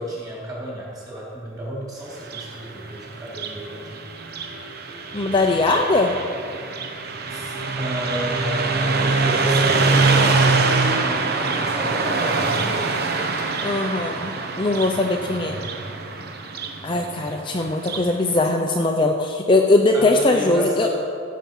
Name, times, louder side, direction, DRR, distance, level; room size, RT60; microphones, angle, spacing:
voice 1, 0.0-4.1 7.3-12.9 19.9-20.9, equal, 20° right, -6 dB, 3.5 m, -32 dB
Car passing by, 2.1-18.1, right 3 dB, 50° right, 1.0 m, -24 dB
voice 2, 5.1-6.1 13.6-15.6 16.8-20.9, left 2 dB, 25° left, 2 dB, 0.6 m, -20 dB
15.5 x 7.5 x 5.6 m, 2.4 s
head